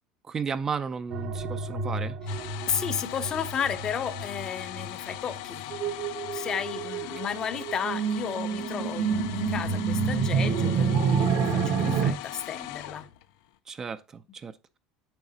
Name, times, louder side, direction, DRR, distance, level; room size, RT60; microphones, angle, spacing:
voice 1, 0.3-2.2 13.7-14.8, right 6 dB, 25° right, 0.4 m, -34 dB
sound 1, 1.1-12.1, right 5 dB, 65° right, 1.2 m, -29 dB
sound 2, 2.3-13.5, left 15 dB, 80° left, 0.6 m, -40 dB
voice 2, 2.7-6.0 6.3-13.1, left 7 dB, 30° left, 0.7 m, -33 dB
8.8 x 5.9 x 2.7 m
cardioid pair, 135°, 2 cm